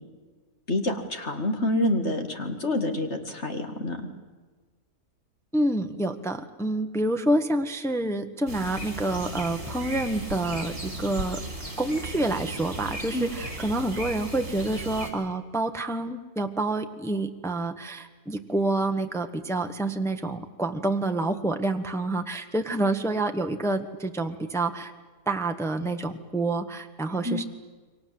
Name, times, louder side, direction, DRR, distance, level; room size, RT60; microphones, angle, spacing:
voice 1, 0.7-4.0 13.1-13.3 27.2-27.4, left 1 dB, 45° left, 5 dB, 2.5 m, -27 dB
voice 2, 5.5-11.4 11.8-24.9 25.3-27.4, right 2 dB, ahead, 6 dB, 1.1 m, -28 dB
sound 1, 8.5-15.1, right 1 dB, 50° right, 4.8 m, -36 dB
28.5 x 23.5 x 7.8 m, 1.4 s
omnidirectional pair, 1.7 m